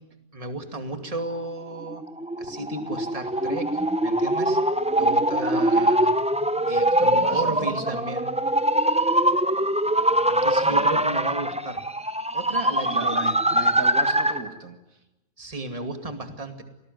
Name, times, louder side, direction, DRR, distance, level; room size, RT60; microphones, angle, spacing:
voice 1, 0.3-2.1 2.4-4.6 5.0-6.1 6.7-8.3 10.3-11.8 12.3-13.2 13.5-13.6 15.4-16.6, right 2 dB, 25° right, 6 dB, 2.5 m, -34 dB
sound 1, 1.8-14.5, right 1 dB, 5° right, 0.7 m, -23 dB
voice 2, 5.4-5.9 6.6-7.9 10.7-11.1 12.8-15.0, right 4 dB, 65° right, 6 dB, 2.2 m, -37 dB
27.5 x 19.5 x 9.4 m, 0.97 s
omnidirectional pair, 1.6 m